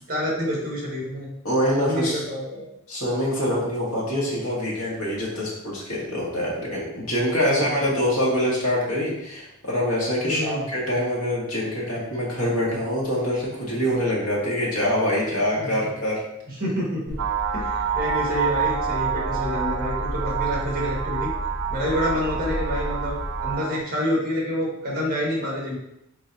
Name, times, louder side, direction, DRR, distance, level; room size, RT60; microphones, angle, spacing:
voice 1, 0.1-1.3 1.8-2.7 7.4-7.7 10.2-10.6 15.6-15.7 16.5-17.1 17.5-21.3 21.7-23.1 23.4-25.8, equal, 45° right, -3 dB, 1.5 m, -27 dB
voice 2, 1.4-2.2 2.9-16.2, equal, 90° left, -5 dB, 1.7 m, -25 dB
sound 1, 17.1-23.5, equal, 15° right, 1.1 m, -33 dB
sound 2, 17.2-23.8, right 7 dB, 80° right, 0.4 m, -28 dB
4.8 x 3.8 x 2.7 m, 0.81 s
head